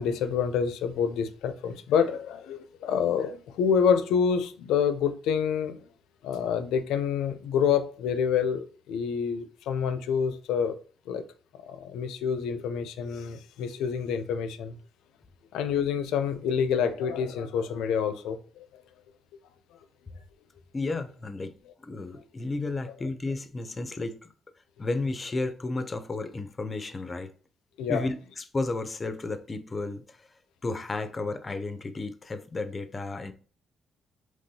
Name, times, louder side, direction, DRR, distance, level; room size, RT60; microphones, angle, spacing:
voice 1, 0.0-5.8 6.2-10.8 11.1-11.2 11.6-14.8 15.5-18.4 27.8-28.1, left 7 dB, 90° left, 0.5 m, -27 dB
voice 2, 20.7-21.5 21.8-24.3 24.8-27.3 27.9-30.3 30.6-33.3, left 3 dB, 30° left, 0.5 m, -33 dB
5.3 x 3.0 x 2.8 m
cardioid pair, 90°, 0 cm